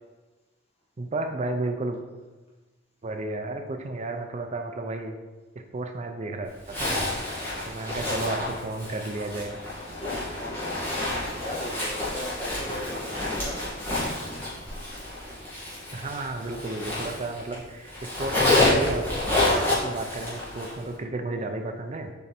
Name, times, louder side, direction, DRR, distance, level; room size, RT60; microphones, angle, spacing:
voice 1, 1.0-2.0 3.0-5.2 5.7-7.1 7.6-9.6 15.9-22.1, right 2 dB, 35° right, 5 dB, 0.5 m, -32 dB
Zipper (clothing), 6.7-17.6 17.9-20.8, left 2 dB, 10° left, 2.4 m, -28 dB
voice 2, 10.3-11.0 11.4-13.6, left 1 dB, 30° left, -5 dB, 2.1 m, -38 dB
7.2 x 5.1 x 4.4 m, 1.3 s
head